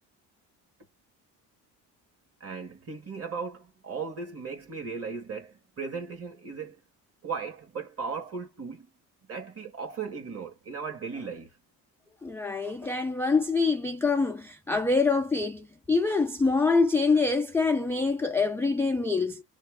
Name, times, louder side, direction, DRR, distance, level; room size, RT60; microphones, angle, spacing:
voice 1, 2.4-6.8 7.2-8.9 9.3-11.5, right 5 dB, 35° right, 1.7 m, -37 dB
voice 2, 12.2-19.4, left 4 dB, 5° left, 0.3 m, -25 dB
3.1 x 2.5 x 3.6 m
cardioid pair, 115°, 39 cm